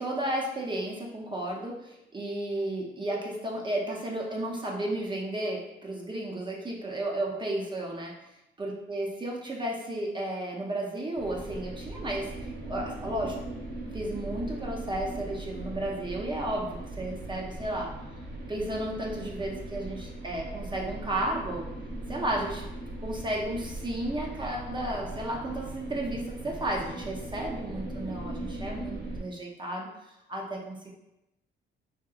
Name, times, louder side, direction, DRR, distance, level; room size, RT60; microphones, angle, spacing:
voice 1, 0.0-8.1 8.6-12.3 12.7-13.4 13.9-17.9 18.5-21.7 22.1-22.7 23.0-29.9 30.3-30.9, right 1 dB, 25° right, -2 dB, 0.6 m, -33 dB
sound 1, 11.2-29.2, right 2 dB, 55° right, 1.0 m, -39 dB
3.4 x 2.8 x 2.4 m, 0.91 s
cardioid pair, 90°, 20 cm